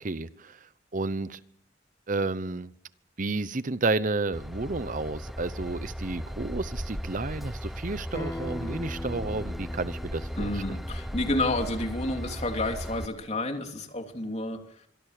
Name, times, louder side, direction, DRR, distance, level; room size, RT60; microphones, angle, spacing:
voice 1, 0.0-1.4 2.1-2.7 3.2-10.6, right 3 dB, 45° right, 0.9 m, -31 dB
Train / Engine, 4.3-13.1, equal, ahead, 1.0 m, -36 dB
Acoustic guitar, 8.1-13.3, left 2 dB, 15° left, 2.0 m, -42 dB
voice 2, 10.4-14.9, left 2 dB, 40° left, 3.2 m, -30 dB
26.0 x 23.5 x 6.7 m
head